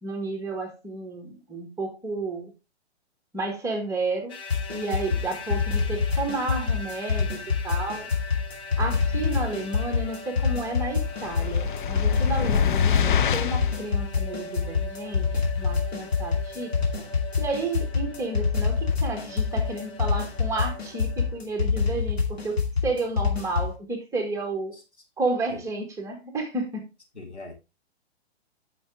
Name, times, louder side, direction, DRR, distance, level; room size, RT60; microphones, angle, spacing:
voice 1, 0.0-2.5 3.3-4.4 4.7-8.1 8.8-15.3 15.6-16.7 17.0-17.1 17.4-24.7 25.2-26.9, right 3 dB, 10° right, 1.5 m, -31 dB
sound 1, 4.3-21.4, left 2 dB, 15° left, 0.9 m, -41 dB
sound 2, 4.5-23.8, left 5 dB, 65° left, 2.7 m, -26 dB
voice 2, 9.2-9.5 24.7-24.8 25.5-25.6 27.1-27.5, left 3 dB, 85° left, 3.6 m, -42 dB
sound 3, 11.2-13.8, left 8 dB, 50° left, 0.7 m, -25 dB
9.5 x 5.9 x 3.6 m
figure-of-eight pair, 120°, 33 cm